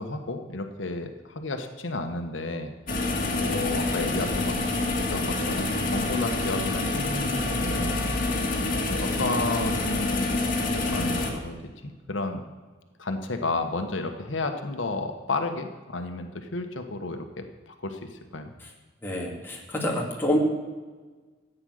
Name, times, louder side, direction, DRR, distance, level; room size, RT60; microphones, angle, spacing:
voice 1, 0.0-2.7 3.4-4.6 5.1-8.1 8.9-10.4 10.7-11.6 11.8-12.4 13.0-18.5, left 2 dB, 80° left, 6 dB, 1.1 m, -32 dB
sound 1, 2.9-11.3, left 2 dB, 45° left, 2.3 m, -27 dB
voice 2, 19.0-20.4, left 1 dB, 10° left, -2 dB, 2.3 m, -27 dB
14.0 x 9.0 x 6.4 m, 1.4 s
head